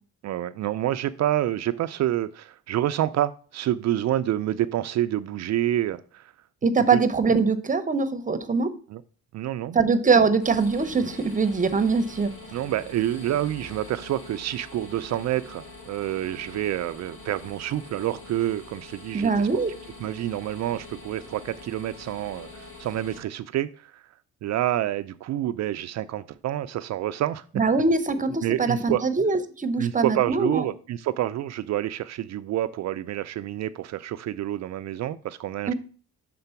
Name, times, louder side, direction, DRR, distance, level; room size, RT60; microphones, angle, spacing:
voice 1, 0.2-6.3 6.9-7.0 8.9-9.0 9.3-9.8 12.5-19.5 20.0-24.0 24.4-27.4 28.4-29.0 29.8-35.7, right 13 dB, 60° right, 0.4 m, -28 dB
voice 2, 6.6-8.7 9.7-12.3 19.1-19.7 27.6-30.7 35.7-35.8, right 4 dB, 25° right, 0.8 m, -22 dB
sound 1, 10.4-23.2, left 2 dB, 80° left, 2.2 m, -44 dB
6.7 x 3.8 x 5.7 m
cardioid pair, 90°, 30 cm